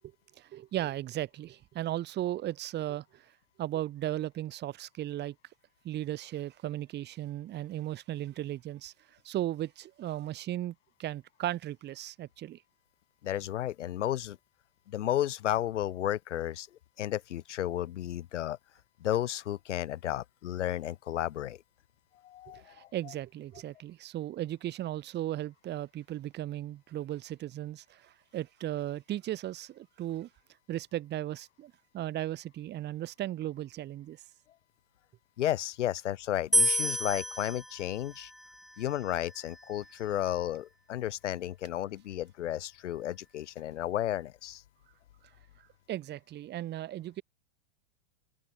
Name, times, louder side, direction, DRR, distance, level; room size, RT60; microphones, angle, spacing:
voice 1, 0.4-3.3 3.6-5.3 5.8-8.9 9.2-10.7 11.0-12.6 22.5-30.3 30.7-34.2 45.9-47.2, right 13 dB, 30° right, 2.6 m, -36 dB
voice 2, 13.2-14.4 14.9-16.7 17.0-18.6 19.0-21.6 22.2-22.9 35.4-38.3 38.8-44.6, left 12 dB, 80° left, 3.6 m, -33 dB
sound 1, 36.5-39.8, equal, ahead, 0.5 m, -31 dB
supercardioid pair, 135°, 35 cm